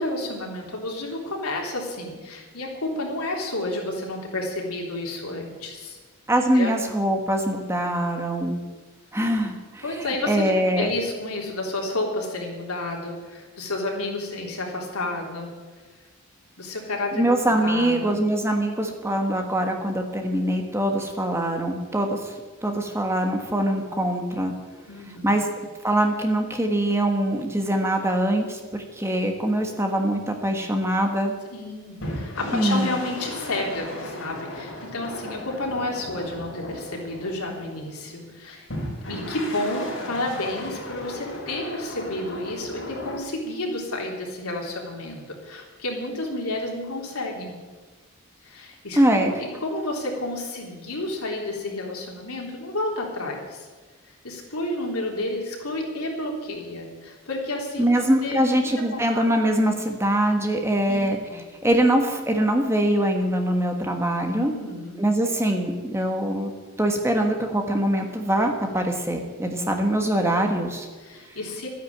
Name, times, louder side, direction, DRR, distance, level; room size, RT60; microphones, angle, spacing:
voice 1, 0.0-6.0 6.5-6.7 9.8-15.5 16.6-18.2 24.9-25.4 31.5-38.7 39.0-47.6 48.4-53.7 54.2-59.2 60.9-61.4 64.4-65.0 69.7-69.8 71.0-71.7, left 2 dB, 90° left, 0 dB, 3.5 m, -31 dB
voice 2, 6.3-8.6 9.1-9.8 10.3-10.9 17.1-22.3 22.6-24.5 25.2-25.5 25.8-31.3 32.5-33.0 49.0-49.3 57.8-61.2 61.6-64.5 65.0-66.5 66.8-70.9, right 1 dB, 10° right, 3 dB, 1.4 m, -23 dB
sound 1, 32.0-37.9 38.7-43.2, left 1 dB, 65° left, 4.7 m, -35 dB
12.5 x 10.0 x 8.6 m, 1.3 s
head